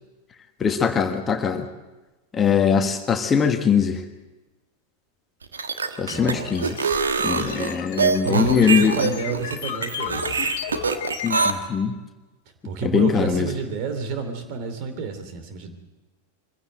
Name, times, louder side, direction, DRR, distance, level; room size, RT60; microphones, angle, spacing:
voice 1, 0.6-1.7 2.3-4.0 6.0-6.7 7.2-8.9 11.2-11.9 12.8-13.5, left 7 dB, 20° left, 6 dB, 1.4 m, -21 dB
sound 1, 5.4-11.5, right 5 dB, 70° right, 1.4 m, -24 dB
voice 2, 6.0-7.1 8.2-10.5 12.6-15.7, right 5 dB, 45° right, 8 dB, 2.9 m, -30 dB
sound 2, 6.1-11.6, left 9 dB, 50° left, 1.7 m, -35 dB
23.5 x 16.0 x 7.9 m, 1.2 s
figure-of-eight pair, 90°, 0 cm